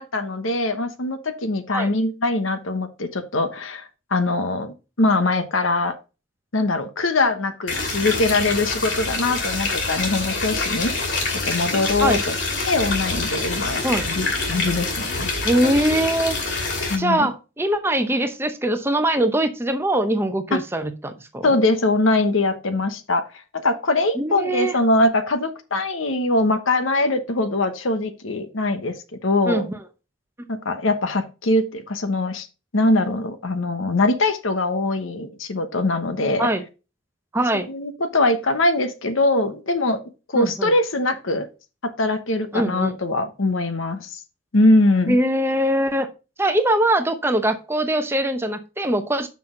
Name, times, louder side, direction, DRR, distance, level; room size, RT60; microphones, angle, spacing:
voice 1, 0.0-6.0 6.5-12.4 12.6-15.3 16.9-17.3 20.5-20.6 21.4-23.3 23.5-29.7 30.5-32.5 32.7-36.5 37.7-40.0 40.3-41.5 41.8-44.2 44.5-45.2, left 2 dB, 85° left, 9 dB, 1.0 m, -22 dB
sound 1, 7.7-17.0, left 3 dB, 60° left, 2.6 m, -26 dB
voice 2, 15.4-16.4 17.0-21.6 24.2-24.8 29.5-29.8 36.4-36.6 37.3-37.7 40.3-40.7 42.5-42.9 45.1-46.1 46.4-49.3, right 1 dB, 10° right, 8 dB, 0.7 m, -22 dB
6.1 x 6.0 x 3.8 m, 0.30 s
head